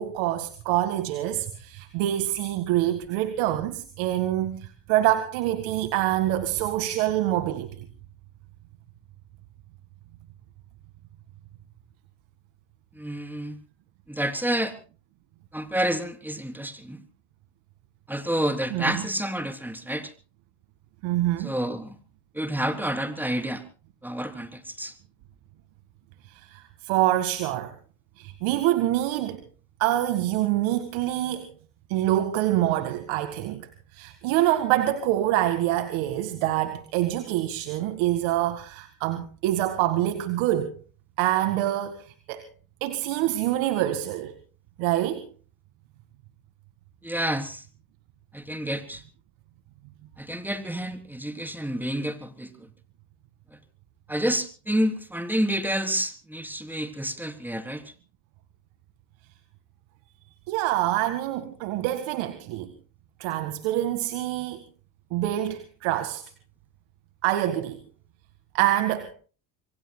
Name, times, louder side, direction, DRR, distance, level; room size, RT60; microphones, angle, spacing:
voice 1, 0.0-7.7 18.7-18.9 21.0-21.5 26.3-27.7 28.2-29.4 29.8-31.5 31.9-40.7 41.2-42.4 42.8-44.3 44.8-45.3 60.5-62.7 63.2-64.6 65.1-66.2 67.2-67.8 68.5-69.1, right 14 dB, 80° right, 2.0 m, -26 dB
voice 2, 12.9-13.6 14.1-14.7 15.5-17.0 18.1-20.1 21.4-22.0 22.3-23.6 24.0-24.9 47.0-47.6 48.3-49.0 50.2-52.7 54.1-57.9, right 1 dB, 5° right, 3.4 m, -29 dB
27.0 x 23.5 x 2.2 m
supercardioid pair, 95°, 47 cm